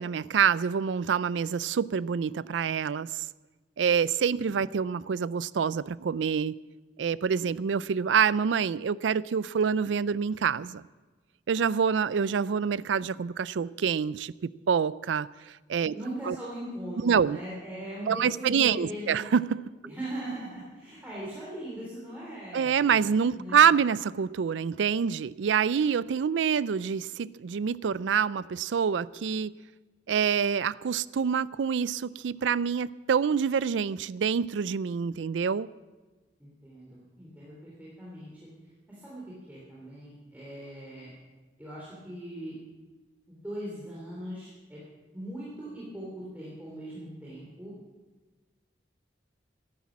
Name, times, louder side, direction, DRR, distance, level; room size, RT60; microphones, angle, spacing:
voice 1, 0.0-3.3 3.8-6.6 7.0-10.8 11.5-15.3 15.7-15.9 16.2-16.4 17.0-17.4 18.1-19.6 22.5-29.5 30.1-35.7, right 7 dB, 85° right, 0.4 m, -26 dB
voice 2, 15.9-19.3 19.8-23.8 36.4-38.5 38.9-41.1 41.6-42.6 43.3-44.8 45.1-47.7, right 1 dB, 10° right, 3.3 m, -40 dB
14.0 x 11.5 x 7.2 m
head